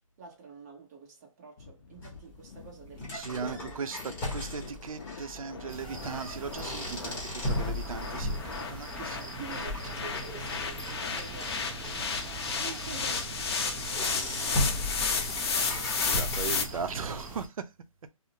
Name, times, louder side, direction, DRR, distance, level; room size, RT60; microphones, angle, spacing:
voice 1, 0.2-4.0 9.2-11.8 12.2-15.0, right 5 dB, 30° right, 0.9 m, -48 dB
sound 1, 1.6-16.7, left 5 dB, 45° left, 0.6 m, -34 dB
sound 2, 2.0-17.0, left 1 dB, 15° left, 0.9 m, -37 dB
voice 2, 3.1-8.4 8.7-9.4 15.7-17.7, right 6 dB, 80° right, 0.5 m, -38 dB
sound 3, 5.7-17.5, right 3 dB, 10° right, 0.5 m, -43 dB
2.7 x 2.0 x 2.6 m
hypercardioid pair, 155°, 18 cm